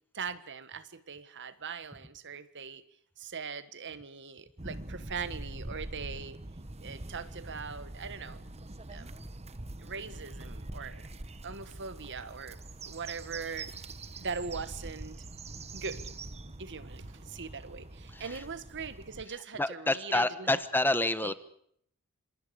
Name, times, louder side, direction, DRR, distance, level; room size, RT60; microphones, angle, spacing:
voice 1, 0.1-2.8 3.2-6.4 6.8-8.4 8.9-9.1 9.8-11.1 11.4-12.6 12.8-13.7 14.2-15.2 15.7-16.1 16.6-20.5 21.2-21.3, right 5 dB, 55° right, 13 dB, 1.6 m, -41 dB
sound 1, 4.6-19.2, right 2 dB, 30° right, 1.3 m, -44 dB
voice 2, 18.1-18.4 19.3-21.3, left 2 dB, 10° left, 13 dB, 1.1 m, -29 dB
27.0 x 27.0 x 5.0 m, 0.67 s
head